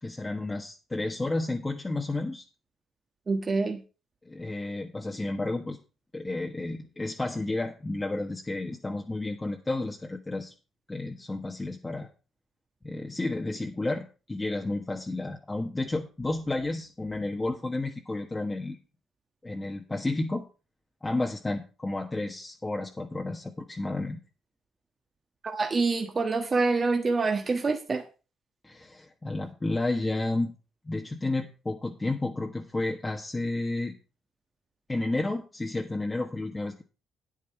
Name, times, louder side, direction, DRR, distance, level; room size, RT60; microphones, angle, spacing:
voice 1, 0.0-2.4 4.2-5.8 6.1-10.5 10.9-12.1 12.8-18.8 19.4-20.4 21.0-24.2 28.6-30.5 30.8-33.9 34.9-36.8, left 2 dB, 20° left, 0 dB, 1.3 m, -31 dB
voice 2, 3.3-3.8 25.4-28.0, right 3 dB, 35° right, 4 dB, 1.3 m, -26 dB
9.2 x 9.0 x 4.5 m, 0.33 s
cardioid pair, 90°, 0 cm